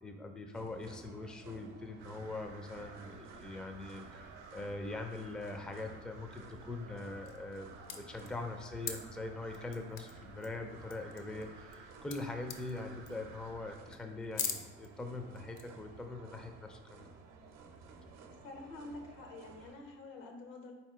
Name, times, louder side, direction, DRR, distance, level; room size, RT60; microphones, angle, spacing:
voice 1, 0.0-17.1, left 2 dB, ahead, 5 dB, 0.4 m, -43 dB
sound 1, 0.5-19.8, right 4 dB, 55° right, 0.7 m, -55 dB
sound 2, 2.0-13.8, right 4 dB, 90° right, 0.5 m, -56 dB
sound 3, 7.2-7.6 7.9-8.9 9.5-10.1 10.4-10.5 10.8-11.8 12.1-12.2 12.4-12.8 13.0-13.3 13.7-13.8 14.3-14.9 15.4-15.6, left 7 dB, 50° left, 0.6 m, -41 dB
voice 2, 18.4-20.7, left 2 dB, 80° left, 2 dB, 0.9 m, -48 dB
4.1 x 2.8 x 3.5 m, 1.3 s
hypercardioid pair, 60°, 33 cm